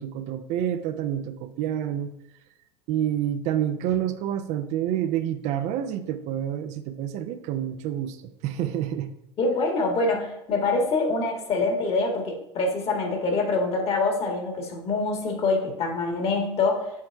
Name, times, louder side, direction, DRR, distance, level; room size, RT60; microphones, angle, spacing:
voice 1, 0.0-2.1 2.9-9.1, right 10 dB, 55° right, 9 dB, 0.5 m, -28 dB
voice 2, 9.4-16.9, left 3 dB, 45° left, 2 dB, 1.7 m, -25 dB
6.5 x 4.2 x 3.4 m, 0.83 s
hypercardioid pair, 75°, 15 cm